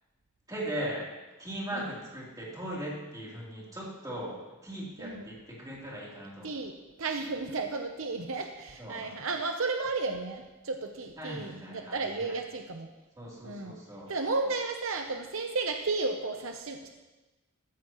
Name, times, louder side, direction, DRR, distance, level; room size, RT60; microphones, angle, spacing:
voice 1, 0.5-1.1 1.4-6.6 8.8-9.1 11.2-12.3 13.2-14.1, right 1 dB, 15° right, -5 dB, 3.4 m, -39 dB
voice 2, 7.0-12.9 13.4-13.8 14.1-16.9, right 3 dB, 65° right, 4 dB, 0.8 m, -33 dB
14.5 x 13.5 x 3.1 m, 1.1 s
head